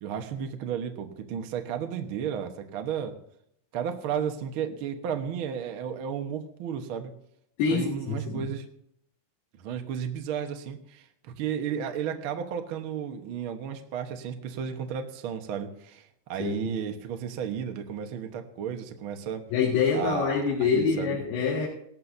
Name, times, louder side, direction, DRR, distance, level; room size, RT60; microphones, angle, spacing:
voice 1, 0.0-3.1 3.7-7.1 7.7-8.6 9.6-11.0 11.4-16.0 16.3-19.4 19.9-20.3 20.7-21.2, right 8 dB, 60° right, 5 dB, 1.3 m, -33 dB
voice 2, 7.6-8.5 16.4-16.6 19.5-21.7, left 5 dB, 90° left, -4 dB, 3.9 m, -26 dB
18.5 x 13.0 x 2.8 m, 0.73 s
omnidirectional pair, 4.1 m